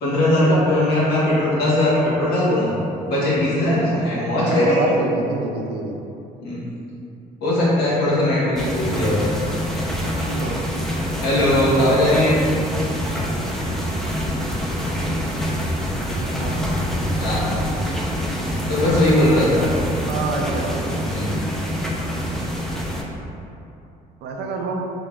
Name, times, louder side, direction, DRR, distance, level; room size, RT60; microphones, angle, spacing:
voice 1, 0.0-2.7 3.0-4.9 6.4-6.6 7.4-9.3 11.2-12.4 17.2-17.5 18.7-19.7 21.1-21.3, left 1 dB, 70° left, -8 dB, 1.3 m, -19 dB
voice 2, 4.4-6.0 10.3-10.6 16.3-16.7 18.8-21.0 24.2-24.8, right 3 dB, 75° right, 1 dB, 0.5 m, -27 dB
sound 1, 8.6-23.0, equal, ahead, 0.4 m, -25 dB
3.6 x 3.6 x 2.4 m, 2.7 s
cardioid pair, 110°, 17 cm